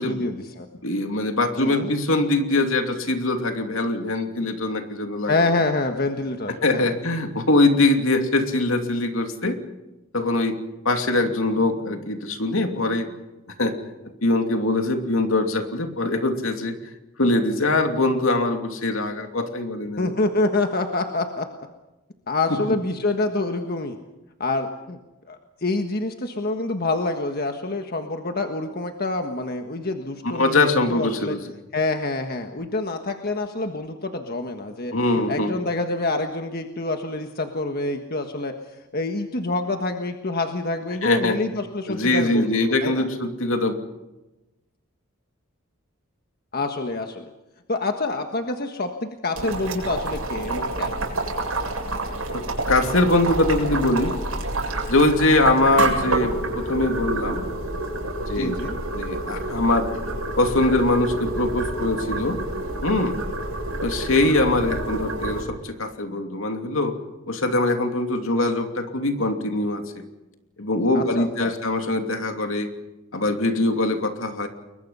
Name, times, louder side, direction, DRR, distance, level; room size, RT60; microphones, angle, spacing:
voice 1, 0.0-0.7 1.6-1.9 5.2-6.9 20.0-21.5 22.3-24.0 24.4-25.0 25.3-31.3 31.7-34.9 35.3-38.5 38.9-43.0 46.5-47.3 47.7-51.0 58.3-58.8 70.9-71.5, left 2 dB, 45° left, 5 dB, 1.5 m, -27 dB
voice 2, 0.8-5.5 6.6-9.6 10.1-10.5 10.8-13.1 13.6-13.7 14.2-16.7 17.2-20.1 22.5-22.6 30.3-31.4 34.9-35.6 41.0-41.4 41.9-43.7 52.3-54.2 54.9-57.4 58.3-58.5 58.9-59.9 60.4-62.4 62.8-63.2 63.8-66.9 67.3-70.0 70.6-72.7 73.1-74.5, left 2 dB, 70° left, 5 dB, 2.8 m, -22 dB
Boiling, 49.3-65.4, right 2 dB, 85° right, 7.3 m, -28 dB
30.0 x 22.5 x 5.6 m, 1.0 s
head